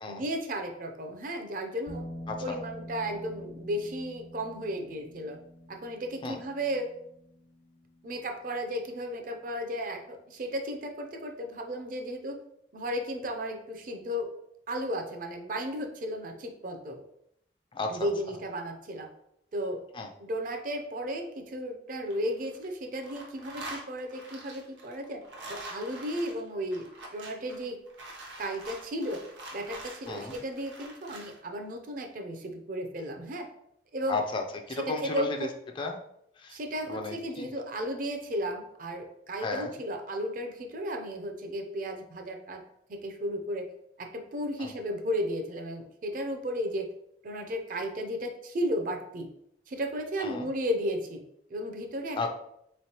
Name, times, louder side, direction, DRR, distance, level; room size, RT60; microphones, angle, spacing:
voice 1, 0.1-2.0 2.4-5.4 5.7-6.9 8.0-12.4 12.7-14.3 14.7-17.0 17.9-19.1 19.5-19.8 20.2-25.2 25.5-27.8 28.4-29.3 29.5-33.5 33.9-34.2 34.8-35.5 36.5-42.6 42.9-43.7 44.0-46.9 47.2-49.3 49.7-51.2 51.5-52.2, equal, 45° right, 4 dB, 0.4 m, -34 dB
sound 1, 1.9-10.2, equal, 85° left, 1.0 m, -47 dB
voice 2, 2.3-2.6 6.2-6.4 17.7-18.1 19.9-20.1 30.1-30.4 34.1-35.4 35.8-36.0 36.4-36.6 36.9-37.5 39.4-39.7 44.6-44.7 50.2-50.5 52.2-52.3, left 3 dB, 25° left, 3 dB, 0.3 m, -34 dB
sound 2, 21.9-22.7 22.9-31.4, right 2 dB, 80° right, 0.8 m, -45 dB
3.6 x 3.1 x 2.8 m, 0.74 s
head